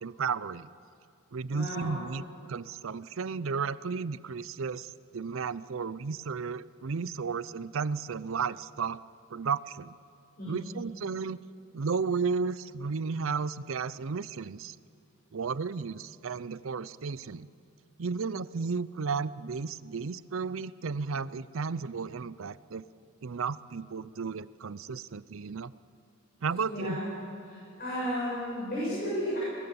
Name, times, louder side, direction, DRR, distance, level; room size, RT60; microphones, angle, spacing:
voice 1, 0.0-0.7 1.3-2.2 2.5-9.0 9.3-9.9 10.5-11.4 11.7-14.8 15.3-17.5 18.0-22.8 23.2-25.7 26.4-27.0, right 5 dB, 70° right, 17 dB, 0.5 m, -33 dB
voice 2, 1.5-1.9 10.4-10.6 26.7-27.0 27.4-29.4, equal, 45° left, -8 dB, 7.9 m, -33 dB
23.0 x 19.0 x 7.0 m, 2.5 s
head